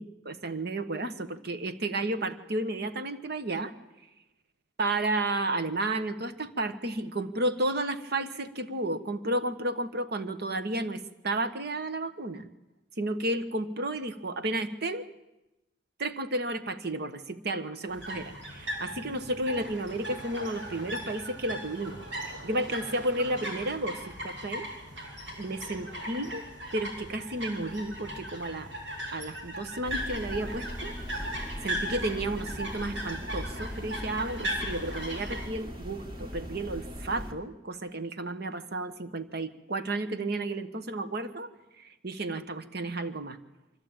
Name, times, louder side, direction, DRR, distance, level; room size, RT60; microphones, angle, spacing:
voice 1, 0.0-3.7 4.8-12.5 13.0-15.1 16.0-22.0 22.4-24.7 25.4-26.4 26.7-28.7 29.1-31.0 31.6-41.5 41.8-43.4, right 2 dB, 60° right, 10 dB, 1.3 m, -32 dB
sound 1, 17.9-35.5, equal, 85° right, 6.8 m, -38 dB
sound 2, 29.8-37.3, equal, 25° right, 2.3 m, -39 dB
24.0 x 15.0 x 8.9 m, 1.0 s
head